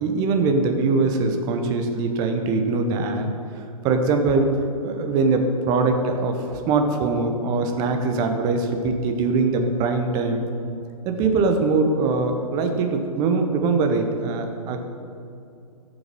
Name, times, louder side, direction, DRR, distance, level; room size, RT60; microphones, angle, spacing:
voice 1, 0.0-3.3 3.8-4.5 4.8-10.4 11.0-14.8, right 3 dB, 20° right, 5 dB, 0.9 m, -22 dB
12.0 x 7.1 x 5.4 m, 2.6 s
figure-of-eight pair, 120°, 19 cm